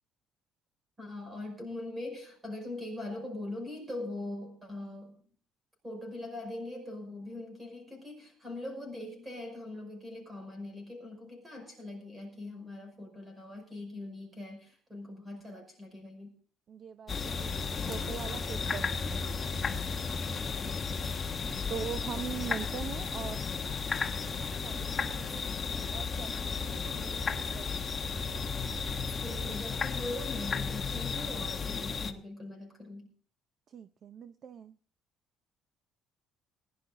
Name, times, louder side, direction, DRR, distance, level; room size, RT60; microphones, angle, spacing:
voice 1, 1.0-5.2 5.8-16.3 20.4-20.7 29.2-33.1, left 2 dB, 15° right, 4 dB, 5.5 m, -41 dB
voice 2, 16.7-19.3 21.7-23.5 24.6-25.6 25.9-28.0 33.7-34.8, right 8 dB, 40° right, 11 dB, 0.6 m, -42 dB
sound 1, 17.1-32.1, left 5 dB, 25° left, 1.2 m, -34 dB
20.0 x 11.0 x 4.0 m, 0.43 s
cardioid pair, 155°, 0 cm